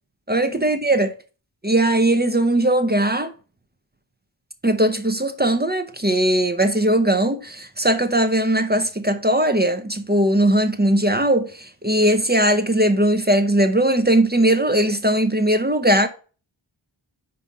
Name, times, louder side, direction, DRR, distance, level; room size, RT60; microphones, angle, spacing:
voice 1, 0.3-1.1 1.6-3.3 4.6-16.1, right 1 dB, 20° right, 0.8 m, -19 dB
5.4 x 4.2 x 5.2 m
wide cardioid pair, 40°, 48 cm